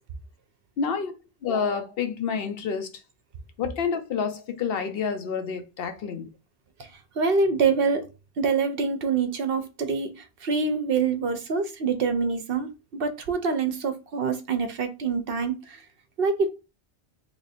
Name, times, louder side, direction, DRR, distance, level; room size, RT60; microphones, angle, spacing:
voice 1, 0.8-1.1 1.4-2.9 3.6-6.3, left 6 dB, 65° left, 0.7 m, -28 dB
voice 2, 7.2-8.0 8.4-10.1 10.4-15.5 16.2-16.5, right 5 dB, 65° right, 0.8 m, -25 dB
3.0 x 2.5 x 4.1 m
omnidirectional pair, 1.1 m